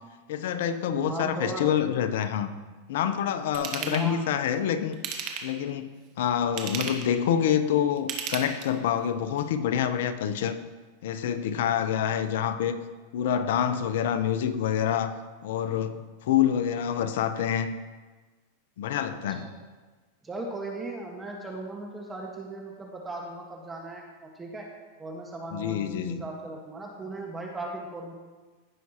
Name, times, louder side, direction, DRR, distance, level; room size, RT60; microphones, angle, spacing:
voice 1, 0.3-2.5 2.9-5.0 5.4-5.9 6.2-10.6 11.0-12.8 13.1-15.1 15.4-17.7 18.8-19.5 25.5-26.2, left 9 dB, 70° left, 10 dB, 0.7 m, -27 dB
voice 2, 0.9-1.6 3.6-4.2 19.1-19.5 20.2-24.7 25.0-28.1, right 2 dB, 15° right, 0 dB, 1.4 m, -37 dB
Ratchet pawl / Tools, 3.5-4.1 4.9-5.6 6.4-7.1 8.0-8.9 9.4-9.5, right 7 dB, 50° right, 1.4 m, -34 dB
16.0 x 5.9 x 2.9 m, 1.3 s
hypercardioid pair, 120°, 0 cm